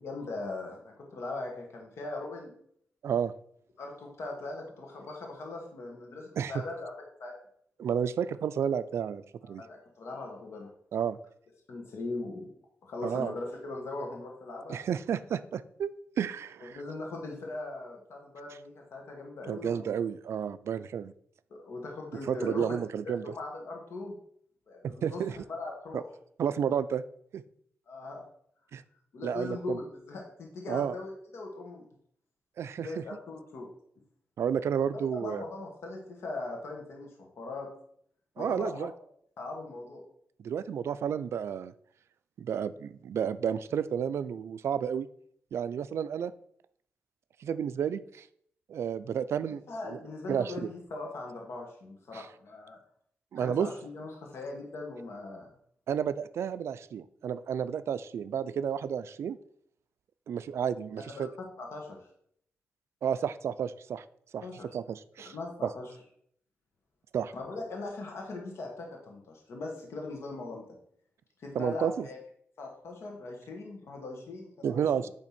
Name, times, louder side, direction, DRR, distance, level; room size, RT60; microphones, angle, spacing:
voice 1, 0.0-2.5 3.8-6.9 7.2-7.3 9.4-10.7 11.7-12.5 12.8-14.8 16.6-19.9 21.5-22.8 23.2-24.2 24.7-25.2 25.5-26.1 27.9-28.2 29.1-31.9 32.8-33.7 35.2-37.7 38.4-38.9 39.4-40.0 49.7-52.8 53.4-55.5 60.9-62.0 64.4-64.7 65.2-65.9 67.3-70.6 71.4-72.2 72.6-75.0, left 2 dB, 75° left, 0 dB, 1.7 m, -40 dB
voice 2, 7.8-9.6 10.9-11.2 13.0-13.3 14.7-15.9 16.2-16.8 19.5-21.1 22.3-23.2 24.8-25.4 25.9-26.0 26.4-27.0 27.3-27.4 28.7-28.8 29.2-29.8 30.7-30.9 32.6-33.0 34.4-35.4 38.4-38.9 40.4-41.7 42.4-45.1 45.5-46.3 47.4-48.3 48.7-49.6 49.9-50.0 50.3-50.7 52.1-52.3 53.3-53.7 55.9-59.4 60.3-61.3 63.0-64.0 64.3-64.4 64.7-65.3 65.6-65.7 67.1-67.3 71.5-72.1 74.6-75.1, right 8 dB, 80° right, 14 dB, 0.4 m, -31 dB
9.0 x 3.4 x 5.9 m, 0.66 s
wide cardioid pair, 120°, 5 cm